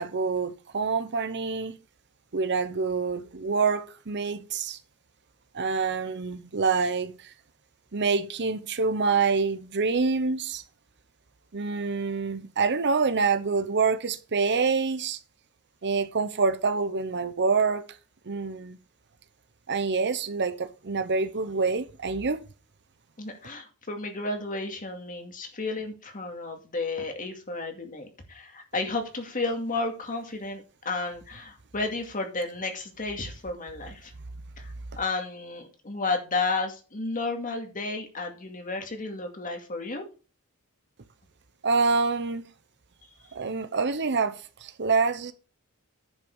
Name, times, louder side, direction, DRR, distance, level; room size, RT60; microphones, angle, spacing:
voice 1, 0.0-1.8 2.3-4.8 5.5-7.3 7.9-10.6 11.5-15.2 15.8-17.8 18.3-18.8 19.7-22.4 41.6-42.5 43.3-45.3, right 4 dB, 50° right, 0.8 m, -26 dB
voice 2, 23.2-34.1 34.6-40.0, left 3 dB, 40° left, 2.3 m, -32 dB
10.5 x 5.9 x 5.4 m
head